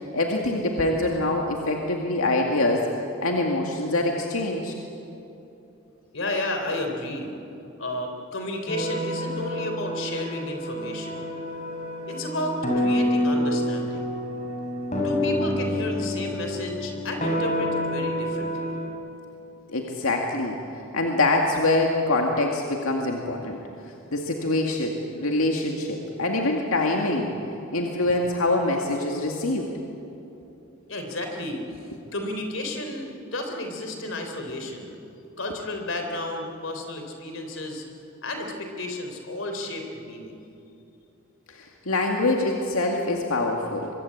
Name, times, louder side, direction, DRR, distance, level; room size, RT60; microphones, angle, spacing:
voice 1, 0.1-2.9 3.2-4.7 19.7-20.6 20.9-23.6 24.1-27.3 27.7-29.7 41.5-43.9, left 2 dB, 85° left, 1 dB, 2.2 m, -24 dB
voice 2, 6.1-7.3 7.8-11.3 12.1-14.1 15.0-18.8 30.9-35.0 35.4-37.8 38.2-40.4, left 1 dB, 65° left, 4 dB, 3.7 m, -32 dB
sound 1, 8.7-18.9, equal, 35° left, 5.1 m, -28 dB
24.5 x 23.5 x 8.7 m, 2.9 s
head